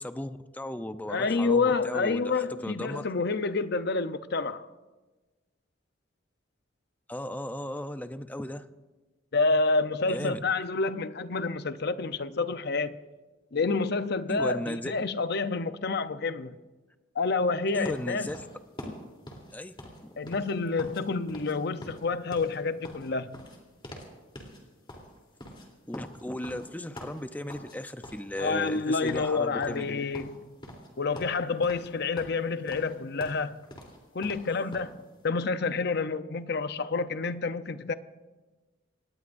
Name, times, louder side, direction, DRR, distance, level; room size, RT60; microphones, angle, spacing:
voice 1, 0.0-3.0 7.1-8.6 10.1-10.4 14.3-14.9 17.7-18.4 18.8-18.9 19.5-19.7 20.0-20.1 25.9-30.0, left 1 dB, 10° left, 0.6 m, -36 dB
voice 2, 1.1-4.7 9.3-13.0 13.5-16.6 17.1-18.3 20.2-23.4 28.4-30.6 31.0-33.6 34.1-37.9, left 4 dB, 60° left, 0.7 m, -28 dB
sound 1, 17.8-21.0 21.3-21.6 21.8-24.1 24.4-24.6 24.9-27.8 28.0-28.8 29.1-29.3 29.6-30.9 31.2-31.9 32.2-34.9, equal, 25° left, 3.3 m, -45 dB
25.5 x 19.0 x 2.6 m
head